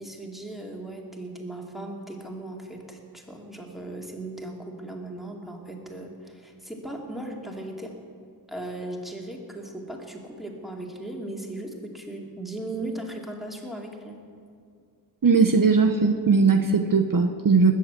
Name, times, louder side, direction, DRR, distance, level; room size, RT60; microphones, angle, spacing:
voice 1, 0.0-7.9 8.5-14.2, right 1 dB, ahead, 0 dB, 2.4 m, -37 dB
voice 2, 15.2-17.7, right 4 dB, 55° right, 6 dB, 0.9 m, -19 dB
20.0 x 7.6 x 8.2 m, 2.2 s
wide cardioid pair, 70°, 39 cm